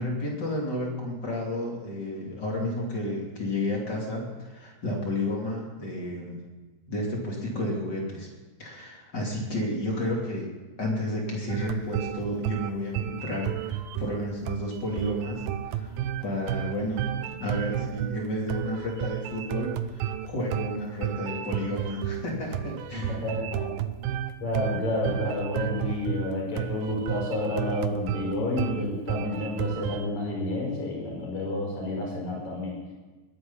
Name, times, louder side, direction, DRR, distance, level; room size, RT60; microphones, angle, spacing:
voice 1, 0.0-6.4 6.9-8.3 8.6-10.5 10.8-17.0 17.4-23.2, left 1 dB, 30° left, -2 dB, 3.0 m, -31 dB
sound 1, 11.5-30.1, right 11 dB, 85° right, 2.4 m, -32 dB
voice 2, 22.9-23.7 24.4-32.8, left 1 dB, 55° left, -1 dB, 6.4 m, -30 dB
20.5 x 9.9 x 5.6 m, 1.3 s
omnidirectional pair, 4.0 m